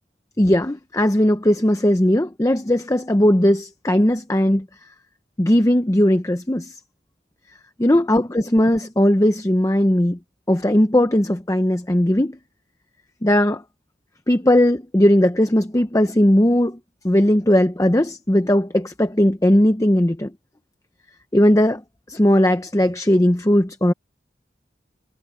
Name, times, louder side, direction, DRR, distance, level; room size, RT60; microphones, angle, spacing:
voice 1, 0.4-4.7 5.4-6.7 7.8-10.2 10.5-12.4 13.2-13.6 14.3-16.8 17.0-20.3 21.3-21.8 22.1-23.9, left 1 dB, 20° left, 0.8 m, -18 dB
head